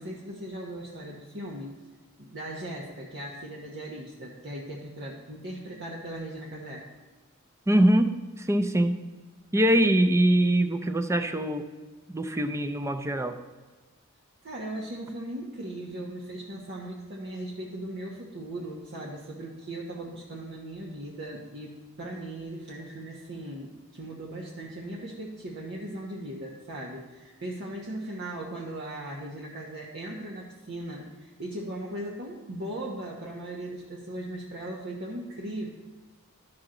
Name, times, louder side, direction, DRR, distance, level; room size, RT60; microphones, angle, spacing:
voice 1, 0.0-1.7 2.2-6.9 14.4-35.7, right 1 dB, 55° right, -3 dB, 1.1 m, -38 dB
voice 2, 7.7-9.0 9.5-11.7 12.1-13.4, right 1 dB, 15° right, 8 dB, 0.5 m, -23 dB
13.0 x 6.0 x 3.8 m, 1.3 s
head